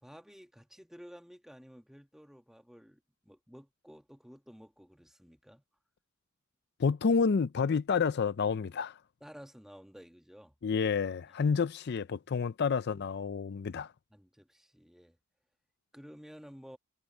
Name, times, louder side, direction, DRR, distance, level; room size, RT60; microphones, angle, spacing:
voice 1, 0.0-5.6 9.2-10.6 11.3-11.6 14.1-15.2 15.9-16.8, equal, ahead, 1.8 m, -53 dB
voice 2, 6.8-8.9 10.6-13.9, left 5 dB, 55° left, 0.4 m, -29 dB
head